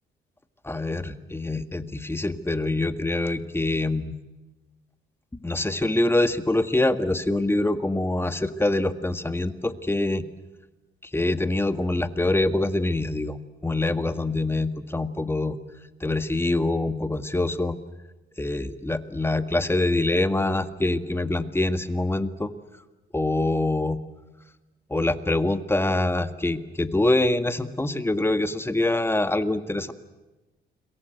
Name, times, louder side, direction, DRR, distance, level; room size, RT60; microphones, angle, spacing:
voice 1, 0.6-4.2 5.4-10.3 11.0-15.6 16.0-17.8 18.4-22.5 23.1-24.0 24.9-29.9, left 2 dB, 10° left, 9 dB, 1.8 m, -25 dB
29.5 x 23.0 x 8.1 m, 1.1 s
cardioid pair, 90°, 20 cm